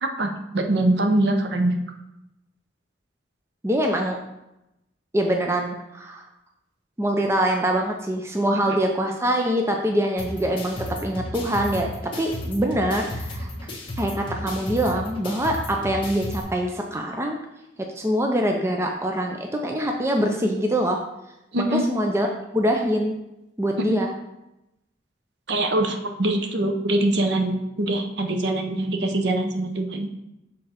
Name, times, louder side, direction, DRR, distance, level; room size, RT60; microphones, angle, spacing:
voice 1, 0.0-1.8 21.5-21.8 23.9-24.0 25.5-30.2, right 1 dB, 60° right, 5 dB, 0.7 m, -23 dB
voice 2, 3.6-4.2 5.1-6.2 7.0-13.5 14.0-17.4 18.0-21.0 21.6-22.3 22.5-23.1 23.6-24.1, right 1 dB, 15° right, 2 dB, 0.5 m, -24 dB
sound 1, 10.2-16.4, left 1 dB, 25° left, 1.5 m, -34 dB
6.6 x 3.7 x 4.3 m, 0.90 s
head